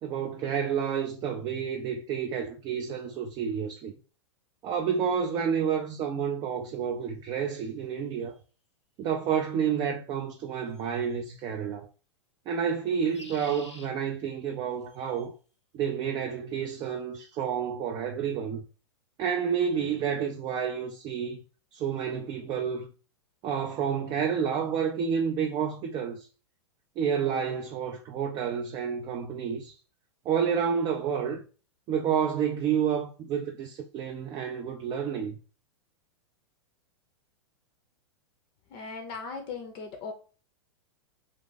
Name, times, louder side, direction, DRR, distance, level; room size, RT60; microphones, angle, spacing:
voice 1, 0.0-3.9 4.6-8.4 9.0-11.9 12.5-15.3 15.7-18.6 19.2-21.4 21.7-22.9 23.4-26.3 27.0-29.7 30.3-31.4 31.9-35.4, right 7 dB, 30° right, 0.4 m, -29 dB
sound 1, 8.2-8.3 10.7-11.1 12.9-13.9 14.8-15.3, left 2 dB, 85° left, 0.6 m, -49 dB
voice 2, 38.7-40.1, left 4 dB, 35° left, 0.6 m, -38 dB
2.5 x 2.4 x 3.8 m
figure-of-eight pair, 100°, 15 cm